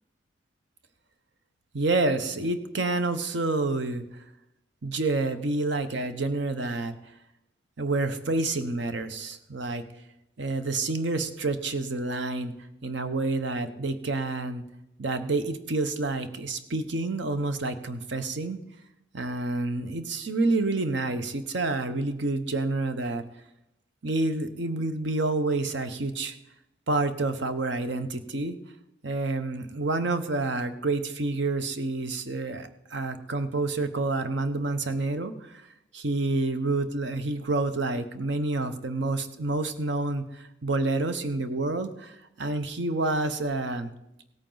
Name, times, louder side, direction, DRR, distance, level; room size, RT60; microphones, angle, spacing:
voice 1, 1.7-4.0 4.8-7.0 7.8-9.8 10.4-12.5 12.8-14.6 15.0-18.6 19.1-23.2 24.0-26.4 26.9-28.6 29.0-35.6 35.9-43.9, right 2 dB, 65° right, 10 dB, 0.9 m, -28 dB
17.0 x 8.9 x 3.9 m, 0.87 s
head